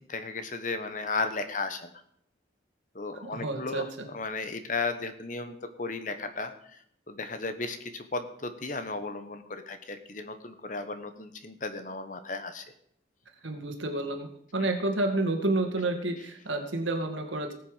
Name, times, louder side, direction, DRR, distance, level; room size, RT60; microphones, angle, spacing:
voice 1, 0.0-1.9 2.9-6.8 7.1-12.6 14.6-14.7, left 3 dB, 45° left, 9 dB, 1.1 m, -35 dB
voice 2, 3.2-4.1 13.4-14.3 14.5-17.5, right 2 dB, 85° right, 4 dB, 2.0 m, -30 dB
18.5 x 6.8 x 5.0 m, 0.68 s
head